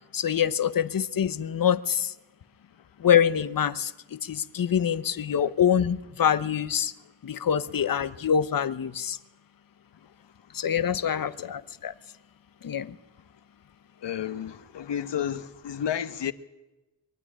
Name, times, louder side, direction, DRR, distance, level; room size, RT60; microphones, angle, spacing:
voice 1, 0.1-2.1 3.0-6.9 7.2-9.2 10.5-11.9 12.6-13.0, left 8 dB, 50° left, 0.9 m, -25 dB
voice 2, 7.7-8.2 10.0-10.1 10.5-10.6 11.1-11.5 14.0-16.3, left 9 dB, 70° left, 1.1 m, -33 dB
22.5 x 12.5 x 9.9 m
wide cardioid pair, 95°, 43 cm